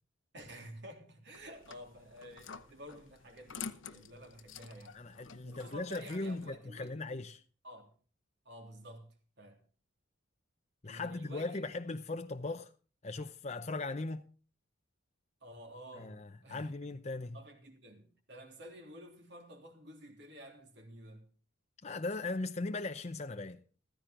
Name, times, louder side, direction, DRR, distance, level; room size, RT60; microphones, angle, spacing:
voice 1, 0.3-5.0 5.4-7.0 7.6-7.9 8.4-9.1 9.4-9.6 10.8-11.7 15.4-16.2 16.4-16.9 17.3-21.3, equal, 60° right, 3.3 m, -51 dB
sound 1, 1.3-6.5, left 6 dB, 75° left, 1.0 m, -49 dB
voice 2, 4.9-7.4 10.8-12.7 13.0-14.2 15.9-17.4 21.8-23.6, left 2 dB, 35° left, 0.7 m, -38 dB
15.0 x 14.5 x 3.8 m
head